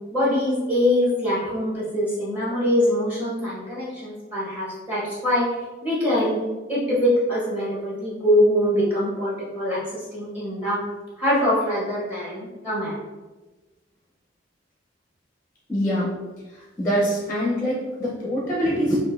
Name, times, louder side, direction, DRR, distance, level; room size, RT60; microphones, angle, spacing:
voice 1, 0.1-5.5 5.8-10.8 11.2-12.9, left 1 dB, 10° right, -8 dB, 1.3 m, -23 dB
voice 2, 15.7-16.1 16.5-19.0, equal, 15° left, -5 dB, 0.7 m, -24 dB
6.0 x 2.6 x 2.6 m, 1.2 s
head